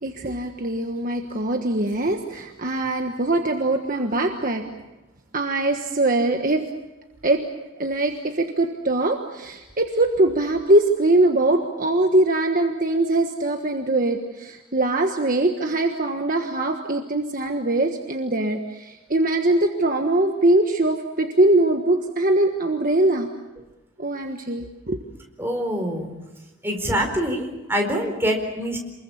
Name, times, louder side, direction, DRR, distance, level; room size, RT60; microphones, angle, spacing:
voice 1, 0.0-4.6 5.3-6.6 7.2-7.4 7.8-23.3 24.0-25.0, right 2 dB, 40° right, 3 dB, 1.4 m, -22 dB
voice 2, 25.4-26.1 26.6-28.8, equal, 10° right, 1 dB, 4.5 m, -25 dB
28.0 x 22.0 x 7.2 m, 1.1 s
head